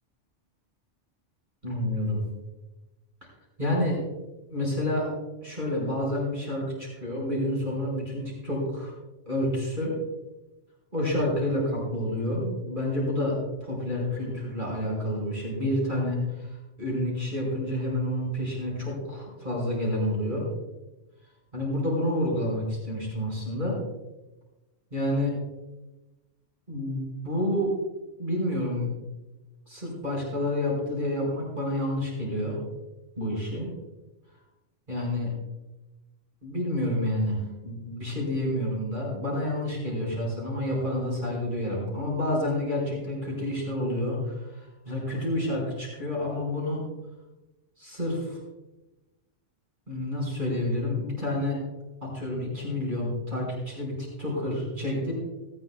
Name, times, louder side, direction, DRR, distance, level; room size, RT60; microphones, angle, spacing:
voice 1, 1.6-2.2 3.6-4.0 4.5-5.1 5.4-8.9 9.3-10.0 10.9-20.5 21.5-23.8 24.9-25.3 26.7-27.7 28.2-28.9 29.7-32.6 33.2-33.7 34.9-35.3 36.4-46.8 47.8-48.4 49.9-51.6 52.0-55.1, left 1 dB, 40° right, -4 dB, 5.3 m, -29 dB
18.5 x 13.5 x 2.3 m, 1.1 s
omnidirectional pair, 1.3 m